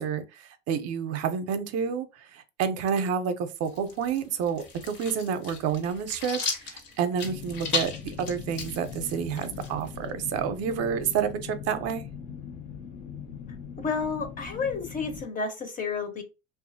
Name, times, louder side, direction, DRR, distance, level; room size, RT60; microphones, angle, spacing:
voice 1, 0.0-12.0, right 7 dB, 50° right, 0.6 m, -29 dB
sound 1, 3.6-10.1, left 4 dB, 65° left, 1.2 m, -36 dB
sound 2, 7.2-15.2, left 7 dB, 85° left, 0.8 m, -41 dB
voice 2, 13.8-16.2, left 5 dB, 25° left, 0.6 m, -31 dB
2.6 x 2.4 x 2.6 m
hypercardioid pair, 90°, 33 cm